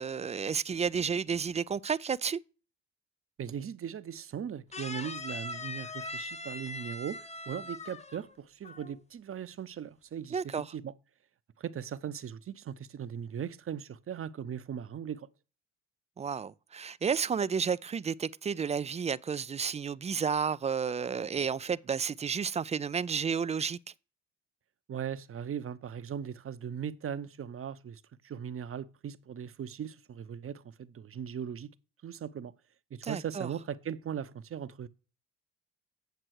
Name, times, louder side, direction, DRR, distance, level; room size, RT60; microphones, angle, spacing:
voice 1, 0.0-2.4 10.3-10.7 16.2-23.8 33.0-33.5, right 6 dB, 20° right, 0.3 m, -31 dB
voice 2, 3.4-10.9 11.6-15.3 24.9-31.7 32.0-32.5 32.9-34.9, right 8 dB, 35° right, 0.7 m, -39 dB
sound 1, 4.7-8.3 8.6-9.0, left 2 dB, 20° left, 0.9 m, -41 dB
7.9 x 7.5 x 4.7 m
hypercardioid pair, 55°, 36 cm